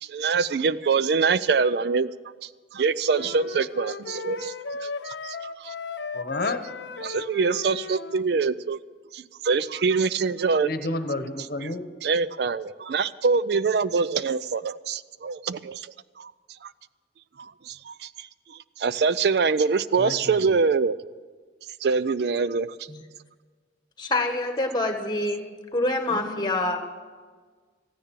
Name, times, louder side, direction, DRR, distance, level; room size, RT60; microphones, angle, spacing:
voice 1, 0.0-2.1 2.4-4.5 4.8-5.7 7.0-8.8 9.1-10.7 12.0-16.3 16.6-16.7 17.4-21.0 21.8-22.7, right 5 dB, 65° right, 16 dB, 0.4 m, -25 dB
sound 1, 3.0-8.2, left 4 dB, 75° left, 0.7 m, -36 dB
voice 2, 6.1-6.6 10.6-11.9 20.0-20.6 26.1-26.6, left 2 dB, 55° left, 9 dB, 1.0 m, -31 dB
voice 3, 24.0-25.4 25.7-26.8, left 2 dB, 25° left, 5 dB, 1.5 m, -26 dB
15.0 x 10.0 x 7.4 m, 1.5 s
head